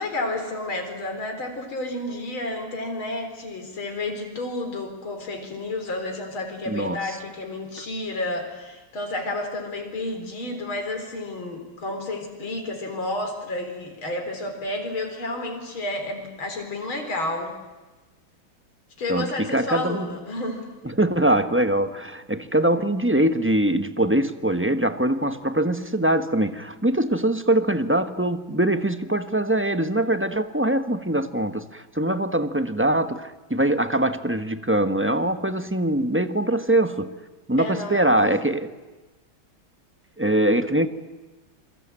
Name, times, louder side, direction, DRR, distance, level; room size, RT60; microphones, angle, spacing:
voice 1, 0.0-17.5 19.0-20.7 37.6-38.4, left 2 dB, 75° left, 4.9 m, -31 dB
voice 2, 6.7-7.0 19.1-20.1 20.8-37.1 37.5-38.7 40.2-40.9, right 1 dB, 10° right, 0.8 m, -23 dB
27.5 x 23.5 x 8.9 m
omnidirectional pair, 2.2 m